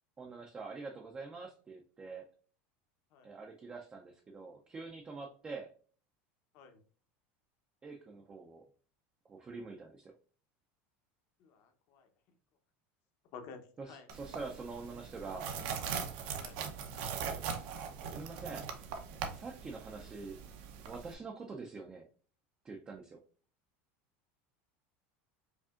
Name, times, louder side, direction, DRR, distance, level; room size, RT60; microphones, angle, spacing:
voice 1, 0.2-2.3 3.2-5.7 7.8-8.6 9.3-10.1 13.8-15.5 18.1-18.7 19.3-20.4 20.8-22.1 22.6-23.2, right 4 dB, 15° right, 2 dB, 0.4 m, -45 dB
voice 2, 11.4-12.1 13.3-13.6 13.9-14.1 16.4-16.6, left 6 dB, 50° left, 6 dB, 0.8 m, -51 dB
sound 1, 14.1-21.1, right 6 dB, 60° right, 0.7 m, -41 dB
4.9 x 2.6 x 2.4 m, 0.42 s
supercardioid pair, 155°, 6 cm